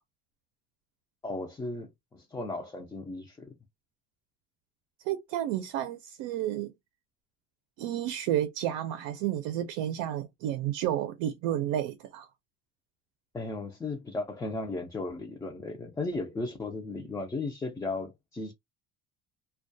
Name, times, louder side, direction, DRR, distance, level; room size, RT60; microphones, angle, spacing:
voice 1, 1.2-3.5 13.3-18.5, left 3 dB, 10° left, 0.3 m, -35 dB
voice 2, 5.0-6.7 7.8-12.3, right 11 dB, 85° right, 0.5 m, -31 dB
2.2 x 2.2 x 2.6 m
cardioid pair, 140°, 31 cm